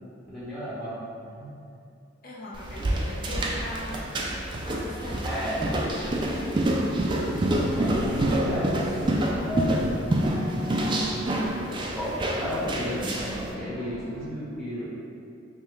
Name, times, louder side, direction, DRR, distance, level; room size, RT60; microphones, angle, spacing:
voice 1, 0.2-1.5 2.7-2.9 5.2-5.5 7.7-8.7 9.4-9.8 10.9-11.4 11.9-14.9, equal, ahead, -11 dB, 1.2 m, -34 dB
voice 2, 2.2-6.5, left 1 dB, 50° left, -8 dB, 0.7 m, -40 dB
sound 1, 2.5-13.4, right 1 dB, 25° right, 0.4 m, -27 dB
sound 2, 6.0-6.3 6.6-12.1 12.9-14.3, right 1 dB, 85° right, 0.6 m, -38 dB
5.4 x 2.2 x 3.2 m, 2.5 s
head